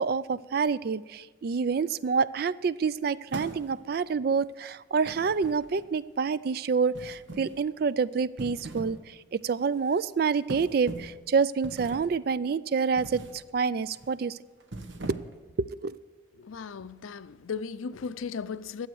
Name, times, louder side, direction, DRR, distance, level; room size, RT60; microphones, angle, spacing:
voice 1, 0.0-14.4 15.6-16.0, right 5 dB, 50° right, 0.3 m, -27 dB
sound 1, 3.3-4.0 5.0-6.0 6.9-7.6 8.2-9.0 9.4-9.6 10.5-11.2 11.6-12.2 13.0-13.4 13.8-14.1 14.6-15.5, right 2 dB, 70° right, 1.0 m, -41 dB
voice 2, 16.4-18.9, left 5 dB, 90° left, 0.5 m, -36 dB
12.5 x 8.0 x 7.7 m
head